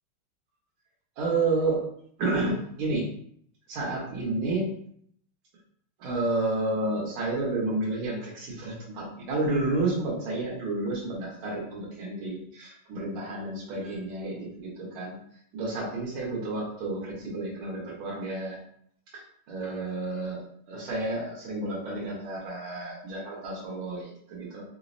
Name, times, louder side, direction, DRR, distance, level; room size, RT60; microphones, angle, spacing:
voice 1, 1.2-1.8 2.2-3.1 3.7-4.6 6.0-15.2 15.5-18.6 19.1-19.2 19.5-20.4 20.7-24.6, right 2 dB, 85° right, -5 dB, 1.9 m, -30 dB
5.0 x 2.0 x 2.5 m, 0.65 s
omnidirectional pair, 2.3 m